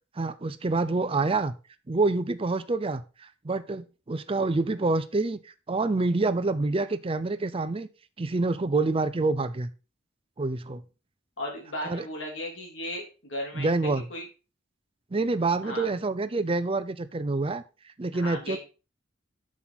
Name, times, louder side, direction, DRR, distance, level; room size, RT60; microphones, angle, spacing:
voice 1, 0.2-1.5 1.9-5.4 5.7-7.9 8.2-9.7 10.4-10.8 11.8-12.1 13.6-14.0 15.1-17.6 18.0-18.6, right 3 dB, 30° right, 0.5 m, -27 dB
voice 2, 11.4-14.2 15.6-15.9 18.1-18.6, left 1 dB, 75° left, 3.4 m, -36 dB
7.5 x 6.2 x 4.1 m
head